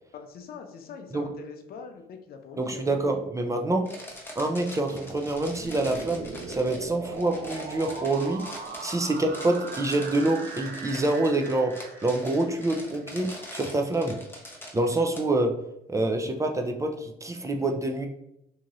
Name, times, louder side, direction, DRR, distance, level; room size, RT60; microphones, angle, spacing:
voice 1, 0.1-3.2, left 6 dB, 65° left, 5 dB, 0.5 m, -43 dB
voice 2, 2.6-3.9 4.4-8.4 8.8-14.2 14.7-15.5 15.9-18.1, right 2 dB, 20° right, 4 dB, 0.3 m, -26 dB
sound 1, 3.8-15.2, left 1 dB, 15° left, 0.7 m, -43 dB
sound 2, 5.2-13.1, right 4 dB, 80° right, 0.5 m, -40 dB
2.7 x 2.4 x 2.9 m, 0.80 s
cardioid pair, 90°, 17 cm